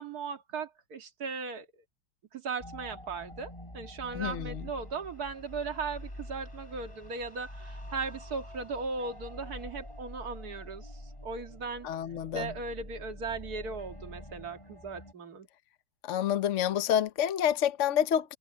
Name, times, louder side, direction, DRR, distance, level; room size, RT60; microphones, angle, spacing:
voice 1, 0.0-1.7 2.3-10.9 11.2-11.9 12.3-15.5, right 4 dB, 55° right, 2.3 m, -37 dB
sound 1, 2.6-15.1, left 1 dB, 15° left, 7.6 m, -46 dB
voice 2, 4.1-4.6 11.8-12.5 16.0-18.4, left 10 dB, 55° left, 0.9 m, -28 dB
omnidirectional pair, 2.1 m